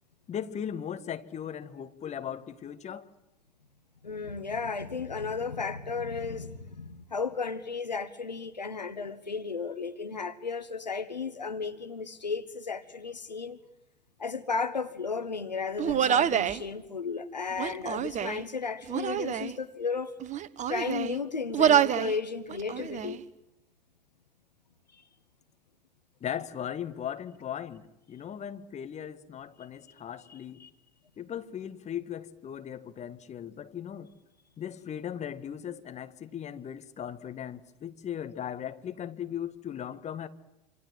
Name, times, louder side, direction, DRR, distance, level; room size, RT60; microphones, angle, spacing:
voice 1, 0.3-3.1 26.2-30.6 31.2-34.1 34.6-40.3, left 9 dB, 30° left, 1.8 m, -38 dB
voice 2, 4.0-13.6 14.2-20.1 20.7-23.2 30.6-30.7, left 5 dB, 85° left, 1.2 m, -34 dB
Human voice, 15.8-16.6 17.5-18.4 18.9-19.5 20.2-21.2 21.5-22.1 22.5-23.2, right 9 dB, 35° right, 1.2 m, -26 dB
27.0 x 27.0 x 7.7 m
figure-of-eight pair, 70°, 21 cm